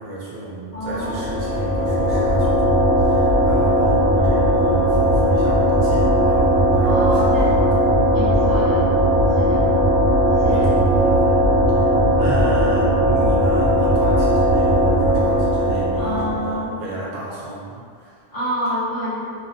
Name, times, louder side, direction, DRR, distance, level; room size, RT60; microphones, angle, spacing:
voice 1, 0.0-7.2 9.5-9.8 10.4-10.7 11.0-11.9 12.2-18.2, right 2 dB, 65° right, -6 dB, 0.8 m, -32 dB
voice 2, 0.7-1.3 6.8-7.5 8.1-8.9 9.3-9.6 10.3-10.7 15.9-16.7 18.3-19.3, equal, 40° left, -12 dB, 1.2 m, -28 dB
sound 1, 0.8-16.7, equal, 85° right, 1.0 m, -17 dB
2.7 x 2.2 x 2.7 m, 2.1 s
omnidirectional pair, 1.2 m